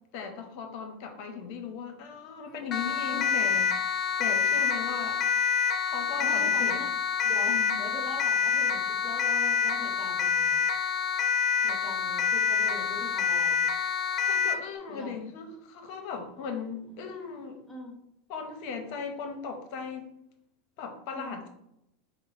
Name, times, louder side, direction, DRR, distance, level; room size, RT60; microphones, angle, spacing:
voice 1, 0.1-3.7 4.2-5.2 5.8-6.8 7.5-7.8 14.2-17.6 18.3-20.1 20.8-21.5, left 6 dB, 60° left, 5 dB, 0.8 m, -38 dB
Siren, 2.7-14.7, left 6 dB, 35° left, 0.3 m, -27 dB
voice 2, 3.1-3.4 6.2-6.9 7.2-10.6 11.6-13.6 14.9-15.2 17.7-17.9 21.1-21.4, left 1 dB, 15° left, -4 dB, 1.1 m, -42 dB
3.9 x 2.0 x 4.0 m, 0.79 s
hypercardioid pair, 110°, 0 cm